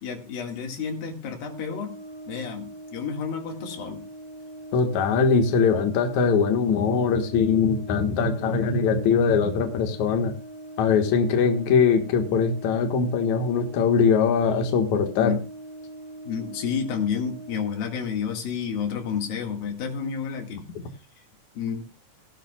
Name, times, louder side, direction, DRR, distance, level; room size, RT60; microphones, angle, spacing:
voice 1, 0.0-2.0 2.3-4.1 15.2-15.4 16.3-20.6 21.6-21.8, left 6 dB, 85° left, 3 dB, 3.8 m, -30 dB
Brass instrument, 1.4-17.8, right 1 dB, 20° right, 1.6 m, -42 dB
voice 2, 4.7-10.3 10.8-15.4, left 5 dB, 60° left, 4 dB, 2.8 m, -21 dB
17.5 x 12.0 x 2.3 m, 0.31 s
omnidirectional pair, 4.0 m